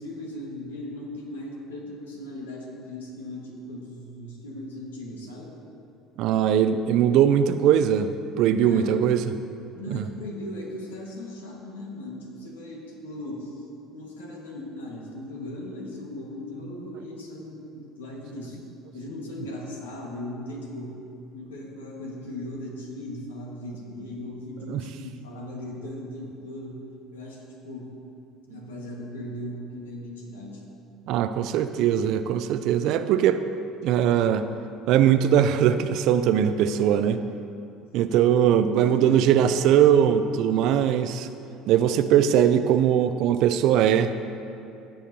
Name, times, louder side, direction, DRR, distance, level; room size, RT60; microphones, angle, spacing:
voice 1, 0.0-5.6 8.6-9.0 9.7-18.6 18.9-21.0 21.3-26.9 27.1-27.9 28.5-30.6 38.7-39.7, left 1 dB, 85° left, -1 dB, 1.6 m, -38 dB
voice 2, 6.2-8.1 8.4-9.2 9.9-10.0 24.7-24.8 28.5-28.6 31.1-33.4 33.8-34.4 34.9-37.2 37.9-41.3 41.7-44.1, right 9 dB, 60° right, 11 dB, 0.4 m, -20 dB
15.5 x 7.1 x 2.8 m, 2.6 s
hypercardioid pair, 65°, 0 cm